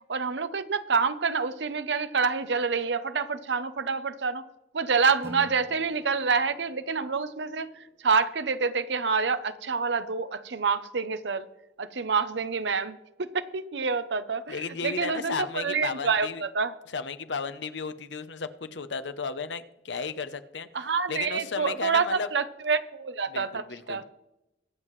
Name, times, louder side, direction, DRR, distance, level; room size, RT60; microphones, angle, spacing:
voice 1, 0.1-4.4 4.7-7.7 8.0-11.5 11.8-16.7 20.7-24.0, right 5 dB, 80° right, 12 dB, 0.7 m, -27 dB
Acoustic guitar / Strum, 5.2-8.4, equal, 15° right, 1.8 m, -49 dB
voice 2, 14.5-16.4 16.9-20.7 21.1-22.3 23.3-24.0, left 5 dB, 90° left, 12 dB, 0.8 m, -34 dB
22.5 x 7.6 x 3.2 m, 0.90 s
head